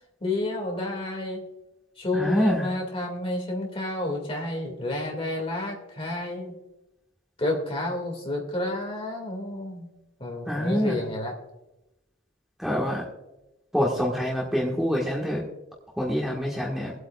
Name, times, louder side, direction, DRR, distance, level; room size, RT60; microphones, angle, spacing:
voice 1, 0.2-1.4 2.0-6.5 7.4-9.9 10.2-11.3, left 2 dB, 30° left, 1 dB, 2.2 m, -30 dB
voice 2, 2.1-2.7 10.5-11.0 12.6-13.0 13.7-15.4 16.0-16.9, equal, ahead, -4 dB, 1.5 m, -25 dB
23.5 x 8.1 x 2.4 m, 0.95 s
head